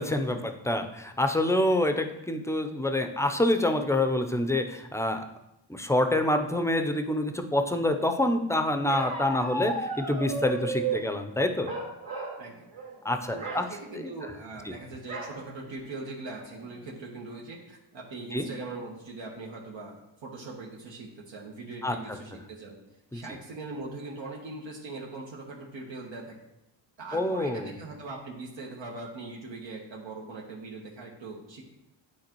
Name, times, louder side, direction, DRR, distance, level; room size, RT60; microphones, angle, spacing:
voice 1, 0.0-5.3 5.7-11.7 13.0-13.7 13.9-14.0 18.3-18.5 21.8-22.0 23.1-23.2 27.1-27.8, left 1 dB, 5° left, 6 dB, 0.6 m, -27 dB
Bark, 8.9-11.0 11.6-12.4 12.7-12.9 13.3-13.7 15.1-15.4 15.9-16.0 16.3-16.8, right 3 dB, 50° right, 2.5 m, -34 dB
voice 2, 13.3-22.8 23.1-26.4 27.0-31.6, right 3 dB, 65° right, -2 dB, 1.3 m, -41 dB
9.3 x 3.9 x 3.0 m, 0.89 s
cardioid pair, 65°, 48 cm